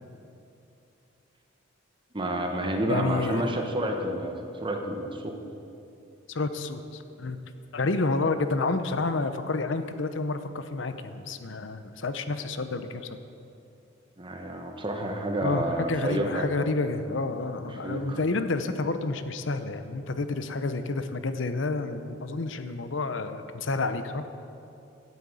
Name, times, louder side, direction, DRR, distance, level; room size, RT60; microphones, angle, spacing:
voice 1, 2.1-5.3 14.2-16.5 17.8-18.2, right 1 dB, 25° right, 3 dB, 1.2 m, -30 dB
voice 2, 2.9-3.6 6.3-7.4 7.7-13.2 15.4-24.2, left 3 dB, 70° left, 10 dB, 0.7 m, -29 dB
11.5 x 8.7 x 8.3 m, 2.7 s
head